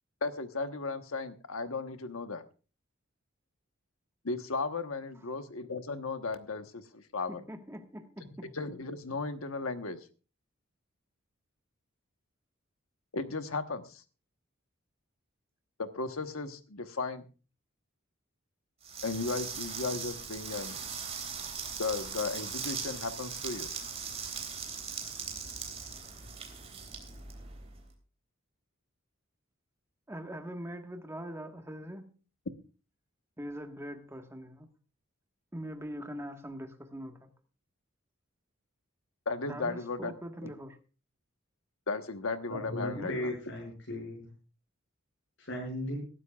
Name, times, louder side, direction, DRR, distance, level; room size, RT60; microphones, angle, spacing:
voice 1, 0.2-2.4 4.2-7.4 8.2-10.0 13.1-14.0 15.8-17.2 19.0-20.8 21.8-23.7 39.3-40.1 40.4-40.5 41.9-43.3, left 3 dB, 80° left, 9 dB, 1.2 m, -35 dB
voice 2, 7.4-8.5 30.1-32.1 33.4-34.7 35.5-37.3 39.5-40.8 42.9-43.1, equal, 15° right, 5 dB, 1.5 m, -42 dB
sound 1, 18.8-27.8, right 6 dB, 30° right, 3.5 m, -40 dB
voice 3, 42.5-44.2 45.4-46.0, left 1 dB, 65° left, -2 dB, 6.1 m, -36 dB
22.0 x 12.5 x 2.4 m, 0.35 s
head